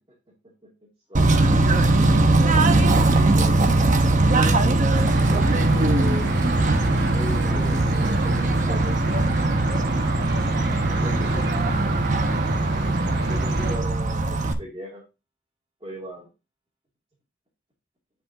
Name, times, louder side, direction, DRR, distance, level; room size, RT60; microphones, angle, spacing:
Bird / Train, 1.1-14.5, right 2 dB, 45° right, 1.1 m, -20 dB
voice 1, 3.0-4.2 5.3-6.5 7.1-9.3 11.0-11.4 12.9-15.0 15.8-16.3, equal, 25° right, -6 dB, 2.7 m, -37 dB
sound 1, 4.9-13.8, right 1 dB, 60° right, 1.6 m, -29 dB
10.0 x 5.2 x 2.8 m, 0.27 s
head